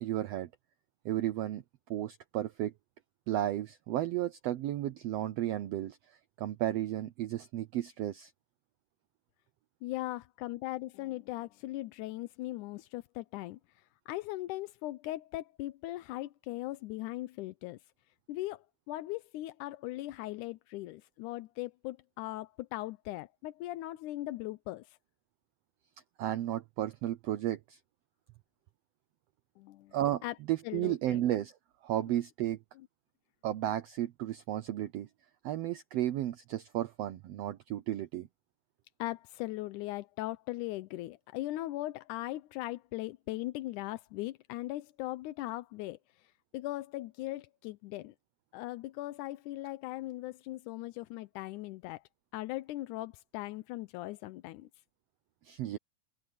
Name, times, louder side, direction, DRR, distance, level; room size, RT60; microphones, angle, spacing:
voice 1, 0.0-0.5 1.0-1.6 1.9-2.7 3.3-8.3 26.2-27.8 29.9-31.5 31.8-32.6 33.4-35.1 35.4-38.3 55.4-55.8, right 13 dB, 80° right, 1.4 m, -33 dB
voice 2, 9.8-17.8 18.3-25.0 29.6-30.0 30.2-30.4 30.6-31.2 39.0-48.2 48.5-52.0 52.3-54.7, left 17 dB, 80° left, 2.0 m, -39 dB
omnidirectional pair, 3.8 m